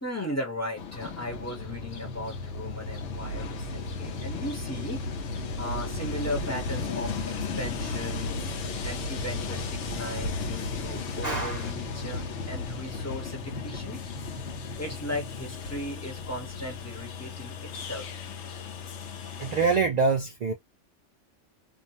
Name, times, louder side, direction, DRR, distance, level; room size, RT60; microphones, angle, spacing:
voice 1, 0.0-5.0 5.6-8.4 8.8-14.0 14.8-18.1, left 1 dB, 15° left, 0.9 m, -37 dB
Train, 0.8-19.8, left 3 dB, 75° left, 0.9 m, -35 dB
sound 1, 1.6-19.9, left 4 dB, 30° right, 1.0 m, -41 dB
voice 2, 11.2-11.7 19.4-20.5, right 4 dB, 70° right, 0.4 m, -25 dB
2.6 x 2.1 x 2.8 m
omnidirectional pair, 1.3 m